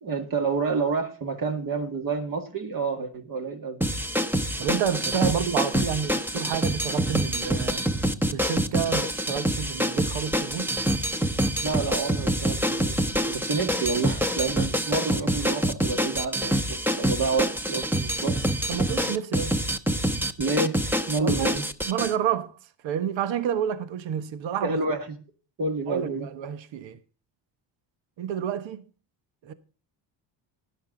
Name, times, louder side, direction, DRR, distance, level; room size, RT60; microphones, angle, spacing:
voice 1, 0.0-3.8 11.6-13.0 13.3-18.4 20.4-21.6 24.6-25.0 25.6-26.3, right 4 dB, 45° right, 2.1 m, -29 dB
sound 1, 3.8-22.1, equal, 5° right, 0.9 m, -26 dB
voice 2, 4.6-7.8 8.3-10.7 18.7-19.5 21.2-21.6 21.9-22.6 22.8-24.8 25.9-27.0 28.2-28.8 29.4-29.5, right 8 dB, 65° right, 1.3 m, -29 dB
13.5 x 10.5 x 3.9 m
cardioid pair, 90°, 48 cm